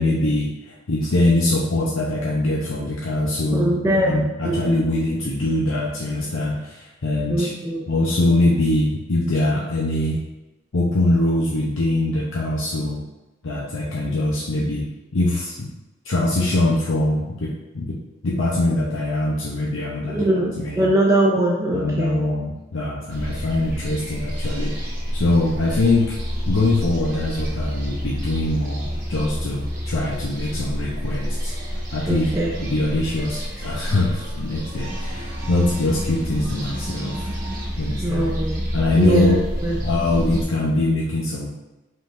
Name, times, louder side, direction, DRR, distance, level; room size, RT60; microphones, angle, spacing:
voice 1, 0.0-7.5 7.9-10.2 10.7-13.0 13.4-14.9 15.1-15.7 16.1-18.0 18.2-20.9 21.7-24.7 25.1-26.2 26.5-31.5 31.9-32.3 32.6-37.3 37.8-38.3 38.7-39.4 39.8-41.5, left 2 dB, 75° left, -4 dB, 0.7 m, -23 dB
voice 2, 3.5-4.2 4.4-4.8 7.3-7.9 20.1-22.2 32.1-32.5 38.0-38.6 39.0-39.4 39.6-39.8, right 1 dB, 15° right, -3 dB, 0.5 m, -21 dB
sound 1, 23.1-40.4, equal, 45° right, 1.2 m, -29 dB
5.2 x 3.8 x 2.5 m, 1.1 s
head